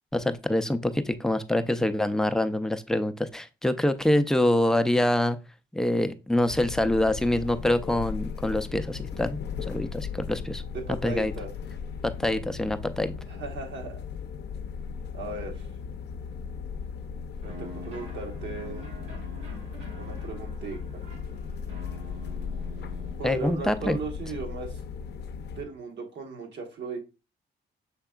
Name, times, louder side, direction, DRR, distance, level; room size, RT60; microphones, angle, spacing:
voice 1, 0.1-5.4 5.7-10.6 11.0-11.3 12.0-13.1 23.2-24.0, left 1 dB, 5° left, 9 dB, 0.4 m, -25 dB
sound 1, 6.4-25.6, left 6 dB, 60° left, 0.5 m, -37 dB
voice 2, 10.7-11.5 13.3-14.0 15.1-15.7 17.4-18.9 20.0-21.0 23.2-24.8 25.5-27.0, right 4 dB, 65° right, 3 dB, 1.2 m, -37 dB
sound 2, 17.4-23.2, right 1 dB, 80° right, 1.6 m, -45 dB
5.8 x 3.5 x 2.3 m, 0.29 s
cardioid pair, 90°, 20 cm